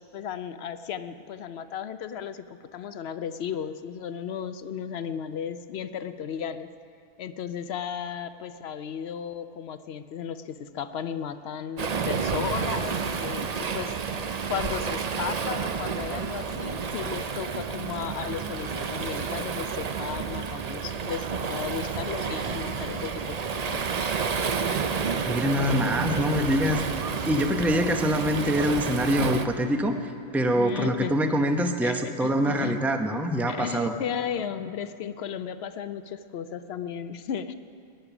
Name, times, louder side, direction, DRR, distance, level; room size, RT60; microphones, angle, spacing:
voice 1, 0.0-6.7 7.2-14.1 14.5-24.1 30.6-31.1 31.8-32.8 33.5-37.5, left 8 dB, 60° left, 11 dB, 0.7 m, -35 dB
Waves surf, 11.8-29.5, right 5 dB, 55° right, 0.4 m, -30 dB
voice 2, 25.3-33.9, equal, ahead, 5 dB, 0.5 m, -25 dB
21.0 x 10.5 x 6.0 m, 2.5 s
omnidirectional pair, 1.5 m